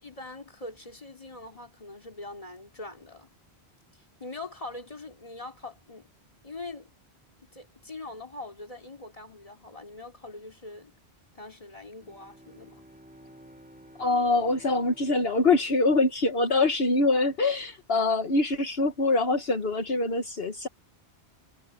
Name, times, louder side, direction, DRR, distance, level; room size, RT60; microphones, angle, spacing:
voice 1, 0.0-3.3 3.9-6.1 6.4-6.9 7.5-10.9 11.3-12.8, left 2 dB, 35° left, 3.0 m, -42 dB
Bowed string instrument, 11.9-16.7, right 1 dB, 5° right, 5.2 m, -53 dB
voice 2, 14.0-20.7, left 3 dB, 65° left, 1.7 m, -24 dB
omnidirectional pair, 1.1 m